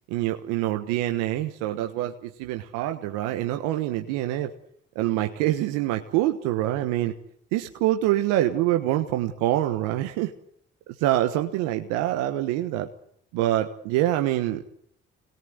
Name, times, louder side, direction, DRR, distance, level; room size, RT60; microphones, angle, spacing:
voice 1, 0.1-4.5 4.9-7.1 7.5-10.3 11.0-12.9 13.3-14.6, right 14 dB, 85° right, 6 dB, 1.3 m, -25 dB
27.0 x 21.0 x 7.9 m, 0.70 s
hypercardioid pair, 50°, 30 cm